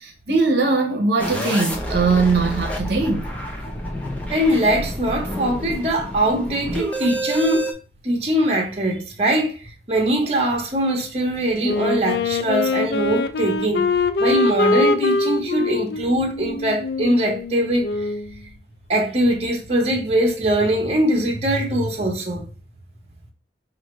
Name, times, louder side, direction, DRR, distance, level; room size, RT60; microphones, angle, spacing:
voice 1, 0.0-3.3, right 3 dB, 65° right, 0.8 m, -20 dB
sound 1, 1.2-7.7, equal, 10° left, 0.7 m, -29 dB
voice 2, 4.3-7.7 8.0-9.6 9.9-13.9 14.2-18.1 18.9-22.4, right 1 dB, 35° right, 0.9 m, -21 dB
Wind instrument woodwind instrument, 11.6-18.3, left 3 dB, 65° left, 0.4 m, -23 dB
4.9 x 2.5 x 3.1 m
head